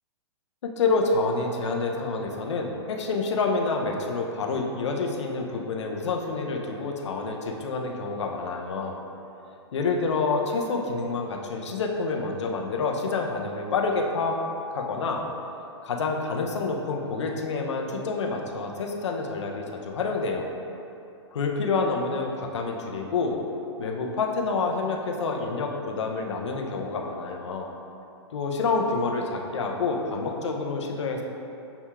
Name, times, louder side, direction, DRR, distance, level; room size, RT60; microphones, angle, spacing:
voice 1, 0.8-9.0 9.7-14.4 14.7-15.2 15.8-20.5 21.3-23.4 23.8-27.7 28.3-31.2, left 4 dB, 85° left, 1 dB, 0.6 m, -28 dB
6.8 x 2.8 x 2.3 m, 2.8 s
hypercardioid pair, 135°, 15 cm